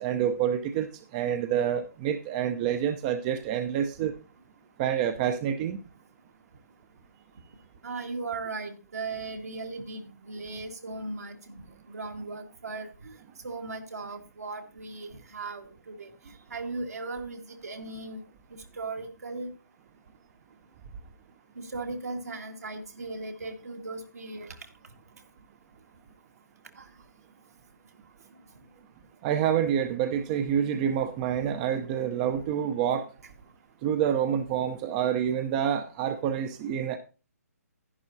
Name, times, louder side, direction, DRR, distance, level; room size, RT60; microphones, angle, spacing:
voice 1, 0.0-4.1 4.8-5.8 29.2-33.1 33.8-37.0, right 9 dB, 25° right, 0.7 m, -27 dB
voice 2, 7.8-13.2 13.4-16.1 16.5-18.2 18.5-19.5 21.6-24.7 26.8-26.9, right 3 dB, 70° right, 1.8 m, -37 dB
11.0 x 10.5 x 2.8 m
figure-of-eight pair, 140°, 9 cm